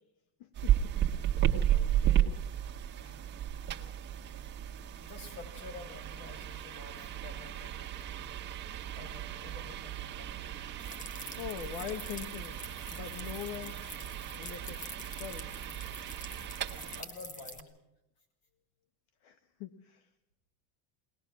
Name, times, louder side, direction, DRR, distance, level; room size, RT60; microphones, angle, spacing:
voice 1, 0.4-0.9 1.2-1.4 11.4-12.6 12.9-13.8 14.3-14.8 15.2-15.6 19.2-20.1, left 10 dB, 75° left, 9 dB, 1.5 m, -42 dB
sound 1, 0.5-17.0, right 11 dB, 25° right, 1.4 m, -34 dB
voice 2, 1.7-3.3 5.0-8.1 8.7-10.5 10.8-10.9 17.0-17.7, left 4 dB, 50° left, 6 dB, 6.1 m, -51 dB
sound 2, 10.8-17.6, equal, 15° left, 1.5 m, -47 dB
22.0 x 19.5 x 6.1 m, 0.86 s
cardioid pair, 175°, 43 cm